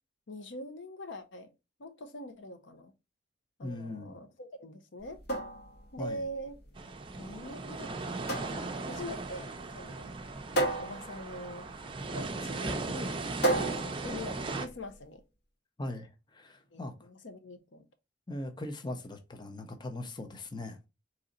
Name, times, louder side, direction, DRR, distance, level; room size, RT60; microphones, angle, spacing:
voice 1, 0.3-1.5 1.8-2.9 3.6-5.2 5.9-6.6 7.2-10.1 10.8-11.7 12.1-13.2 13.8-15.2 16.7-17.9, left 1 dB, 80° left, 0.8 m, -43 dB
voice 2, 3.6-4.2 6.0-6.3 15.8-17.1 18.3-20.9, left 1 dB, 25° left, 0.6 m, -40 dB
sound 1, 5.0-15.0, right 2 dB, 60° left, 1.4 m, -35 dB
sound 2, 6.8-14.7, right 3 dB, 30° right, 0.5 m, -37 dB
4.0 x 3.1 x 3.8 m
head